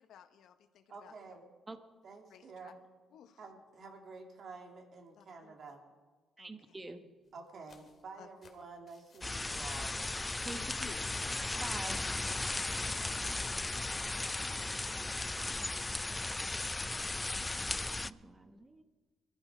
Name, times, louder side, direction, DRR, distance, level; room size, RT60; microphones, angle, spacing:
voice 1, 0.0-1.4 2.3-2.7 3.1-3.4 5.1-5.5 6.4-7.1 8.2-8.3 10.6-11.1 12.0-12.1 12.8-13.2 13.7-13.9, left 9 dB, 75° left, 9 dB, 1.2 m, -56 dB
voice 2, 0.9-1.5 2.0-2.8 3.4-5.8 7.3-10.0, right 4 dB, 55° right, 2 dB, 3.0 m, -50 dB
voice 3, 6.4-7.0 10.4-10.7 11.6-12.0 17.2-17.5 18.0-18.8, right 2 dB, 20° right, 8 dB, 1.4 m, -46 dB
sound 1, 7.2-10.8 11.1-12.2, left 5 dB, 45° left, 2.4 m, -65 dB
sound 2, 9.2-18.1, left 2 dB, 20° left, 0.4 m, -36 dB
21.0 x 13.5 x 5.1 m, 1.4 s
cardioid pair, 90°, 0 cm